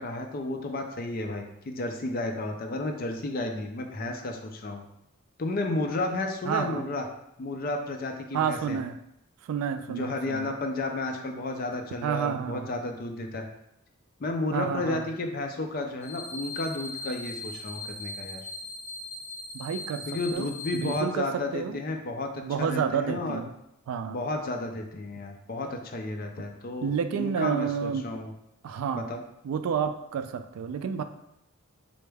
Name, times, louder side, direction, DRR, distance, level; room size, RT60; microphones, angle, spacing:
voice 1, 0.0-4.8 5.4-7.0 7.4-8.8 9.9-13.5 14.2-18.4 20.1-23.4 24.1-28.3 28.9-29.2, left 2 dB, 40° left, 3 dB, 0.4 m, -32 dB
voice 2, 6.4-6.9 8.3-9.0 9.4-10.5 12.0-12.7 14.5-15.1 19.5-21.8 22.4-23.5 23.9-24.2 26.8-28.1 28.6-29.1 29.4-31.0, right 7 dB, 85° right, 12 dB, 0.3 m, -30 dB
sound 1, 16.0-21.0, left 2 dB, 35° right, 0.9 m, -39 dB
4.5 x 2.0 x 3.3 m, 0.80 s
head